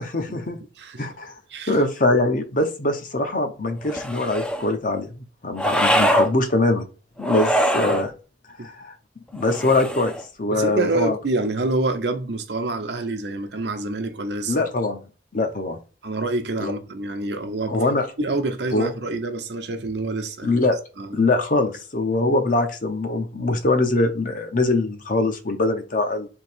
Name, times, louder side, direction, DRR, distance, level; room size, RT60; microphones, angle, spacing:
voice 1, 0.0-0.6 1.0-1.3 1.7-6.9 7.2-8.1 8.6-8.9 9.3-11.2 14.5-15.0 15.3-15.8 16.6-16.7 17.7-18.1 18.7-18.9 20.4-20.8 21.1-26.3, left 2 dB, 50° left, 0.8 m, -23 dB
voice 2, 1.5-1.8 8.6-8.7 10.5-14.6 16.0-17.8 18.2-20.6 21.0-21.2, right 2 dB, 75° right, 0.8 m, -27 dB
sound 1, 3.8-4.7 5.6-6.3 7.2-8.1 9.4-10.2, equal, 5° left, 0.4 m, -22 dB
3.7 x 2.8 x 4.5 m
head